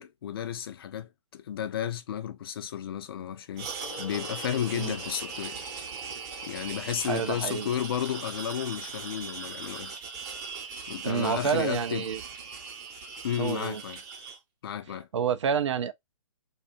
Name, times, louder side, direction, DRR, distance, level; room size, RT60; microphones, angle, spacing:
voice 1, 0.0-3.7 4.0-5.6 6.5-9.9 10.9-12.1 13.2-14.0 14.6-15.1, left 10 dB, 45° left, 0.4 m, -33 dB
sound 1, 3.6-14.4, right 5 dB, 30° right, 0.8 m, -40 dB
Gong, 3.8-9.7 10.0-10.1, left 3 dB, 85° left, 0.8 m, -49 dB
voice 2, 7.0-7.7 11.0-12.2 13.4-13.8 15.1-15.9, right 7 dB, 60° right, 0.4 m, -28 dB
2.7 x 2.3 x 2.4 m
figure-of-eight pair, 130°, 17 cm